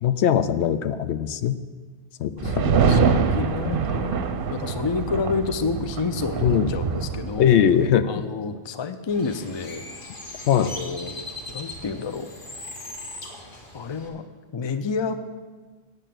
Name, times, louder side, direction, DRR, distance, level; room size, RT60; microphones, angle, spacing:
voice 1, 0.0-1.6 2.2-2.5 2.9-3.0 3.6-3.7 6.4-6.7 7.4-8.1 10.5-10.7, left 9 dB, 85° left, 12 dB, 0.9 m, -21 dB
voice 2, 2.4-4.2 4.5-7.7 8.0-9.8 10.5-12.3 13.7-14.2 14.5-15.1, left 5 dB, 35° left, 10 dB, 0.5 m, -29 dB
sound 1, 2.4-7.9, right 6 dB, 60° right, 0.8 m, -24 dB
Bird, 9.1-14.1, left 2 dB, 50° left, 1.7 m, -39 dB
8.9 x 8.1 x 7.6 m, 1.4 s
omnidirectional pair, 1.1 m